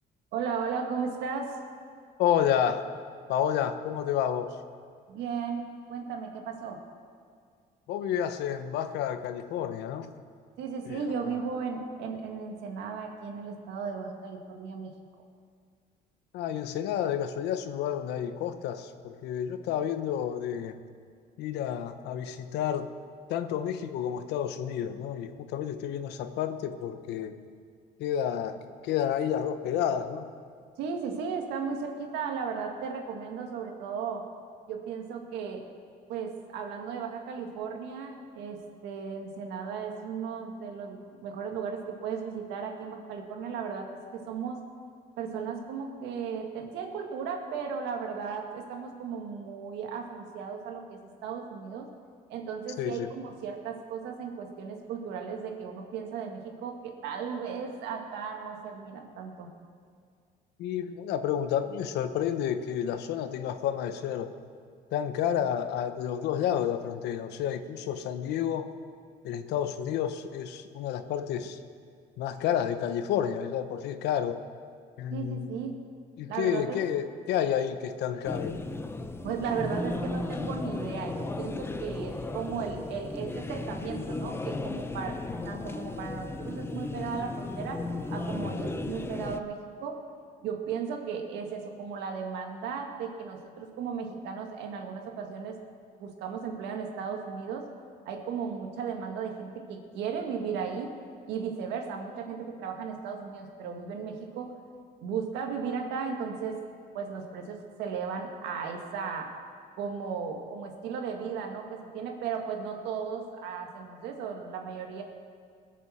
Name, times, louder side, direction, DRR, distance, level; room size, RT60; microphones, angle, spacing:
voice 1, 0.3-1.6 5.1-6.8 10.6-14.9 30.8-34.3 34.7-35.6 36.1-44.6 45.2-51.9 52.3-59.5 75.1-75.8 76.3-76.8 79.2-85.2 85.5-90.0 90.4-95.6 96.0-97.7 98.1-100.9 101.3-104.5 105.0-106.6 106.9-109.3 109.8-115.0, right 6 dB, 90° right, 3 dB, 2.0 m, -35 dB
voice 2, 2.2-2.9 3.3-4.6 7.9-10.1 10.9-11.0 16.3-20.8 21.4-22.9 23.3-27.4 28.0-30.3 52.8-53.1 60.6-64.3 64.9-68.7 69.2-71.6 72.2-74.4 75.0-75.5 76.2-78.6, left 9 dB, 80° left, 10 dB, 1.0 m, -30 dB
sound 1, 78.2-89.4, left 2 dB, 15° left, 0.7 m, -35 dB
20.5 x 7.3 x 7.4 m, 2.1 s
cardioid pair, 110°, 17 cm